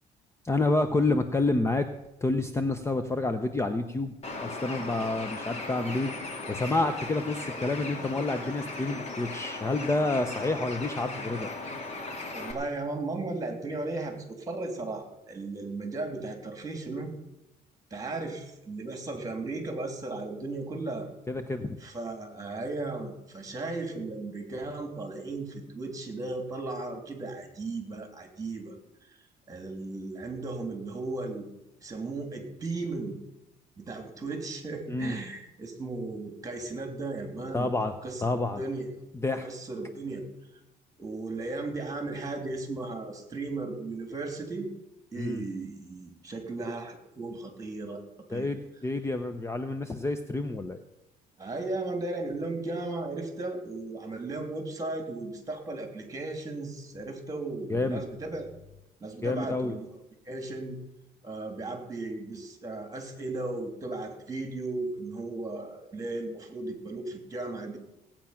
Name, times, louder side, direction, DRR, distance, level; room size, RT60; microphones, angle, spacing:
voice 1, 0.4-1.9 2.2-4.1 4.4-6.1 6.5-11.5 21.3-21.8 34.9-35.2 37.5-37.9 38.2-38.6 39.1-39.5 45.2-45.4 48.3-50.8 57.7-58.0 59.2-59.8, left 2 dB, 15° left, 9 dB, 0.8 m, -29 dB
Bird, 4.2-12.5, left 3 dB, 40° left, 2.7 m, -37 dB
voice 2, 12.3-17.1 17.9-21.1 21.8-28.7 29.1-29.2 29.5-31.5 31.8-33.2 33.8-37.7 38.0-38.9 39.4-40.3 41.0-44.7 45.1-48.0 48.3-48.5 51.4-58.5 59.0-60.0 60.2-60.8 61.2-67.8, right 2 dB, 20° right, 5 dB, 3.2 m, -36 dB
17.0 x 8.9 x 5.9 m, 0.91 s
cardioid pair, 110°, 17 cm